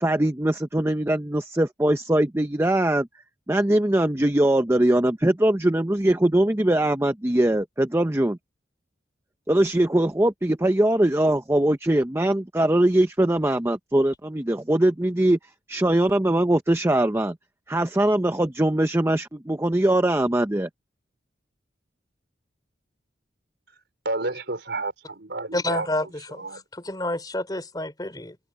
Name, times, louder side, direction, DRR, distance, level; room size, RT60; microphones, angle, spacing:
voice 1, 0.0-3.1 3.5-8.4 9.5-15.4 15.7-17.4 17.7-20.7, right 1 dB, 15° right, 0.7 m, -21 dB
voice 2, 24.0-25.9 26.4-26.6, right 2 dB, 65° right, 4.8 m, -30 dB
voice 3, 25.5-28.4, left 1 dB, 20° left, 3.8 m, -29 dB
head